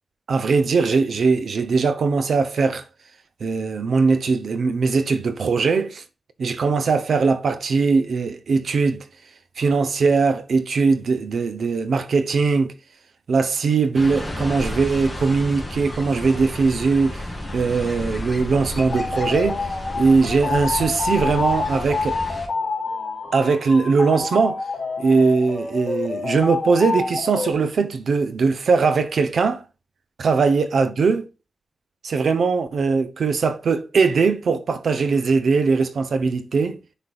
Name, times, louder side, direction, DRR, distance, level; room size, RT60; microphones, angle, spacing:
voice 1, 0.3-2.8 3.4-6.0 6.4-9.1 9.6-12.7 13.3-22.2 23.3-24.6 25.0-29.6 30.2-31.2 32.0-36.8, right 4 dB, 70° right, 0.8 m, -20 dB
sound 1, 13.9-22.5, left 1 dB, 10° left, 2.4 m, -32 dB
sound 2, 18.9-27.5, left 4 dB, 55° left, 2.9 m, -27 dB
10.0 x 5.2 x 2.4 m
wide cardioid pair, 120°, 0 cm